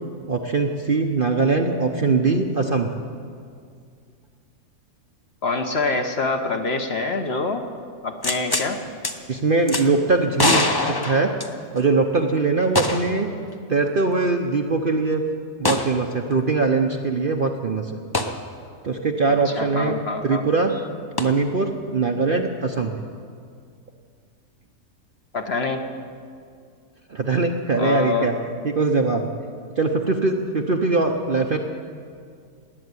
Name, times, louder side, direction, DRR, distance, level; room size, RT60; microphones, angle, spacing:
voice 1, 0.3-2.9 9.3-11.3 11.7-13.3 13.7-15.2 15.6-17.8 18.8-20.0 20.2-20.7 21.2-22.9 27.1-28.4 28.6-29.3 29.8-31.6, right 3 dB, 45° right, 3 dB, 0.8 m, -21 dB
voice 2, 5.4-7.6 8.0-8.8 19.4-20.4 25.3-25.9 27.7-28.3, left 3 dB, 45° left, 5 dB, 1.1 m, -25 dB
sound 1, 8.2-8.7 9.0-9.1 9.7-9.8 10.4-11.9 12.8-13.2 13.5-13.6 15.6-15.9 18.1-18.3 21.2-21.3, left 2 dB, 20° left, 0.6 m, -23 dB
19.0 x 7.9 x 9.6 m, 2.2 s
omnidirectional pair, 1.6 m